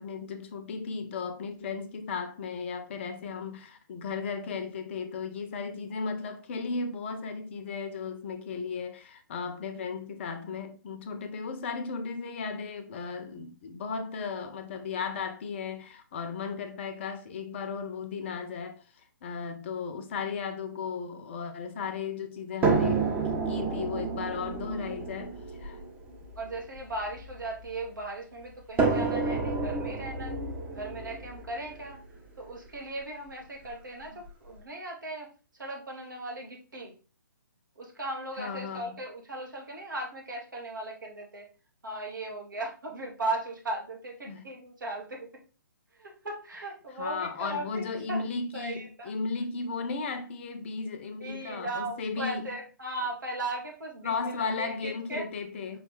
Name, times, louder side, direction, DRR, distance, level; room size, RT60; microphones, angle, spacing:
voice 1, 0.0-18.8 19.2-23.1 23.5-25.8 38.4-39.0 44.3-44.5 47.0-52.5 54.0-55.8, left 5 dB, 35° left, 0.6 m, -35 dB
sound 1, 22.6-27.8 28.8-32.7 33.7-33.8 34.2-34.3, right 4 dB, 15° right, 0.7 m, -30 dB
voice 2, 26.4-30.4 30.7-32.0 32.4-36.9 37.8-41.5 41.8-45.4 46.0-48.2 48.5-49.1 51.2-55.3, right 2 dB, 70° right, 1.8 m, -37 dB
5.0 x 3.2 x 3.2 m
figure-of-eight pair, 135°, 11 cm